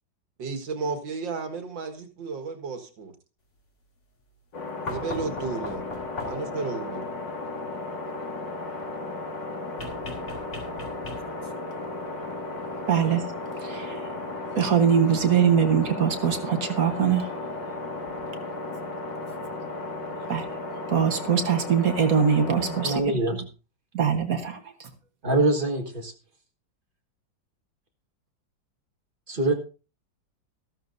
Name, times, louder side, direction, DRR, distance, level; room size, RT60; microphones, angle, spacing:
voice 1, 0.4-3.1 4.7-5.8 6.2-7.1, right 4 dB, 90° right, 2.3 m, -33 dB
sound 1, 4.5-23.0, left 2 dB, 80° left, 2.7 m, -35 dB
sound 2, 4.9-6.6 9.8-11.5 13.1-13.2, left 2 dB, 40° left, 2.5 m, -39 dB
voice 2, 12.9-13.3 13.6-14.2 14.6-17.3 20.3-20.6 20.9-23.0 23.9-24.9, right 7 dB, 55° right, 1.6 m, -23 dB
voice 3, 22.8-23.4 25.2-26.1 29.3-29.5, right 2 dB, 30° right, 1.7 m, -24 dB
13.5 x 13.0 x 2.6 m
omnidirectional pair, 1.9 m